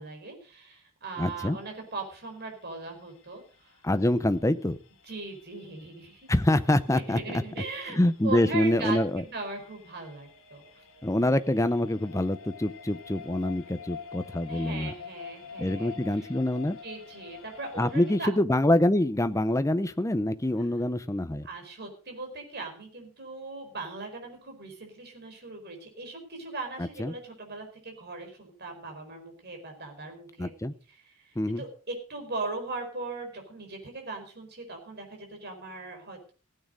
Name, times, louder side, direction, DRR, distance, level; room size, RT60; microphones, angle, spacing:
voice 1, 0.0-3.8 5.1-6.3 6.9-10.8 14.5-16.3 16.8-18.3 21.4-30.5 30.9-36.3, right 3 dB, 45° right, 3 dB, 4.8 m, -39 dB
sound 1, 1.1-18.2, left 6 dB, 65° left, 1.6 m, -48 dB
voice 2, 1.2-1.6 3.8-4.8 6.3-7.2 7.9-9.2 11.0-14.9 15.6-16.8 17.8-21.5 26.8-27.1 30.4-30.7 31.4-31.6, left 1 dB, 15° left, 12 dB, 0.6 m, -25 dB
16.0 x 8.9 x 5.1 m, 0.39 s
head